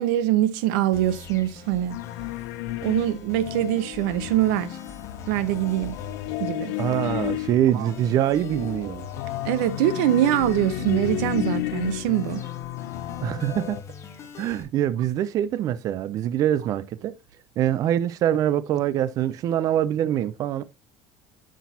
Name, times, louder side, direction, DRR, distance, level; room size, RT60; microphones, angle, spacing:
voice 1, 0.0-2.0 2.8-4.8 5.3-6.0 6.4-6.8 7.7-7.9 9.4-12.4, right 13 dB, 80° right, 0.7 m, -23 dB
sound 1, 0.9-14.6, left 6 dB, 30° left, 1.2 m, -42 dB
sound 2, 1.9-13.8, left 15 dB, 85° left, 0.6 m, -33 dB
voice 2, 6.8-9.0 13.2-13.8 14.4-17.1 17.6-20.6, right 11 dB, 35° right, 0.4 m, -24 dB
8.4 x 6.1 x 2.7 m
cardioid pair, 165°, 10 cm